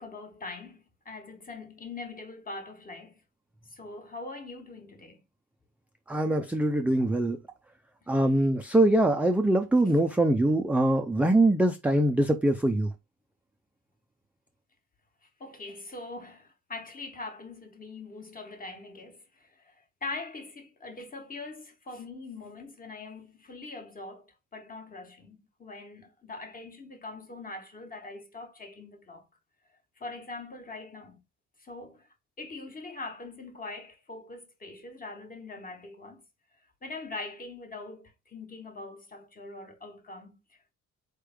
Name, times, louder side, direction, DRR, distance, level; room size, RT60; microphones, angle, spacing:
voice 1, 0.0-3.2 3.7-5.2 15.4-29.3 30.0-31.2 31.6-32.1 32.4-36.2 36.8-40.7, left 3 dB, 25° left, 1.2 m, -42 dB
voice 2, 6.1-7.4 8.1-12.9, right 1 dB, 5° right, 0.3 m, -23 dB
4.4 x 3.3 x 3.5 m
cardioid pair, 145°, 33 cm